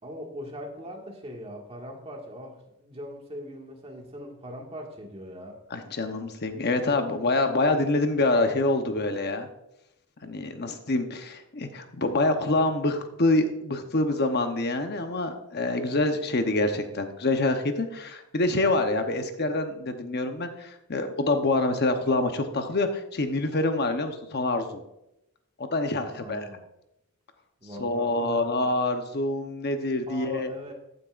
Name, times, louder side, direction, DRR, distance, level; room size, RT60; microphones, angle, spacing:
voice 1, 0.0-5.6 26.1-26.6 27.6-28.7 30.1-30.7, equal, 30° right, 1 dB, 1.9 m, -41 dB
voice 2, 5.7-9.5 10.2-24.8 25.6-26.5 27.8-30.5, left 2 dB, 50° left, 6 dB, 0.9 m, -26 dB
14.5 x 9.5 x 2.5 m, 0.85 s
head